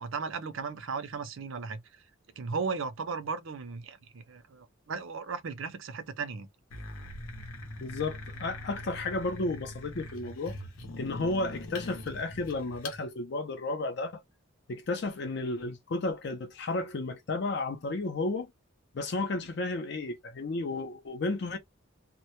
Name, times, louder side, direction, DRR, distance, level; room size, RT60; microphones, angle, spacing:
voice 1, 0.0-1.8 2.4-6.5, right 5 dB, 65° right, 0.5 m, -36 dB
sound 1, 6.7-13.0, left 1 dB, 80° left, 0.7 m, -42 dB
voice 2, 7.8-10.6 11.0-14.2 14.7-18.5 18.9-21.6, left 2 dB, 50° left, 0.4 m, -33 dB
2.1 x 2.1 x 2.8 m
head